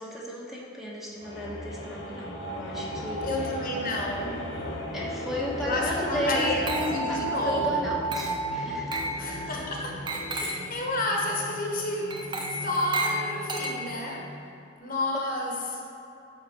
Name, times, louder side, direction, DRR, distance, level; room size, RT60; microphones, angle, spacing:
voice 1, 0.0-3.5 4.9-9.0 10.4-10.5, equal, ahead, -5 dB, 1.1 m, -34 dB
sound 1, 1.1-14.4, left 1 dB, 65° left, 1.3 m, -38 dB
sound 2, 1.7-9.5, right 3 dB, 50° right, 1.1 m, -35 dB
voice 2, 3.2-4.5 5.6-7.9 9.2-10.0 10.3-12.2 12.5-14.3 14.8-15.8, left 1 dB, 45° left, 0 dB, 1.2 m, -30 dB
Glass, 6.4-7.2 8.1-8.5 8.9-9.2 10.1-10.7 12.1-14.1, right 2 dB, 20° right, 0.6 m, -33 dB
11.5 x 4.1 x 6.5 m, 2.8 s
head